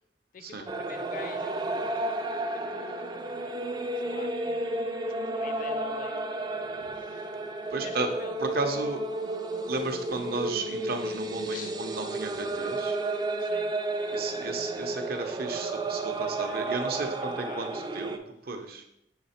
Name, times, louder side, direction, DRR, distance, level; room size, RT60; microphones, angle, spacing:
voice 1, 0.3-1.6 2.5-3.6 3.9-6.7 6.9-7.3 7.8-8.4 11.5-11.8 13.4-13.7 16.2-16.7 17.0-18.0, left 4 dB, 50° left, 9 dB, 0.5 m, -47 dB
sound 1, 0.7-18.2, right 2 dB, 25° right, 0.4 m, -32 dB
voice 2, 7.7-8.1 8.4-9.0 9.7-13.0 14.1-18.2 18.5-18.8, right 3 dB, 60° right, 5 dB, 0.7 m, -34 dB
6.7 x 3.3 x 4.3 m, 0.79 s
head